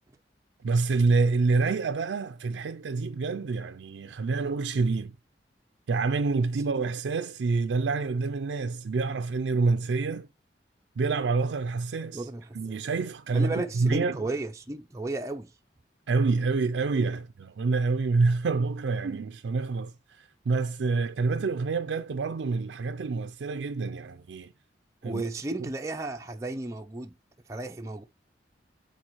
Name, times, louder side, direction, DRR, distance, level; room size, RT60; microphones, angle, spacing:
voice 1, 0.6-5.1 5.9-10.3 11.0-12.3 12.5-14.3 16.1-19.9 20.5-24.5 25.0-25.2, right 4 dB, 85° right, 0.4 m, -27 dB
voice 2, 12.1-12.8 13.3-15.5 25.0-27.1 27.5-28.0, right 2 dB, 15° right, 0.4 m, -34 dB
8.7 x 4.1 x 3.0 m
head